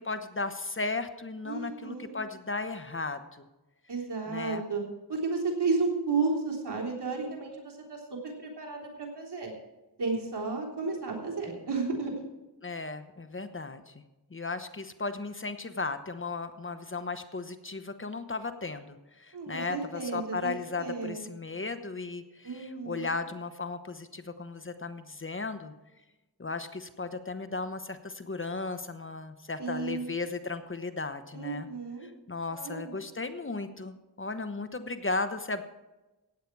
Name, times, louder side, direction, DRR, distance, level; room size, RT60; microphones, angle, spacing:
voice 1, 0.0-3.5 4.3-4.6 12.6-14.0 14.3-25.7 26.4-31.7 32.0-35.6, left 3 dB, 30° left, 9 dB, 1.0 m, -36 dB
voice 2, 1.4-2.1 3.9-4.8 5.1-9.5 10.0-12.1 19.3-21.2 22.4-23.1 29.6-30.1 31.3-32.1 32.5-32.9, right 4 dB, 75° right, -2 dB, 3.6 m, -33 dB
15.5 x 9.3 x 4.7 m, 1.0 s
wide cardioid pair, 70°, 41 cm